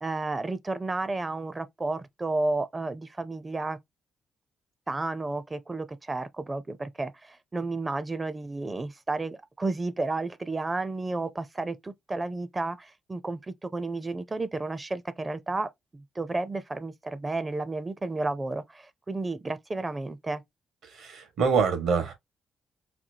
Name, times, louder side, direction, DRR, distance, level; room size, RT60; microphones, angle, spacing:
voice 1, 0.0-3.8 4.9-20.4, right 2 dB, 25° right, 0.5 m, -32 dB
voice 2, 20.9-22.1, right 5 dB, 80° right, 1.3 m, -25 dB
4.2 x 2.3 x 2.7 m
cardioid pair, 65°, 0 cm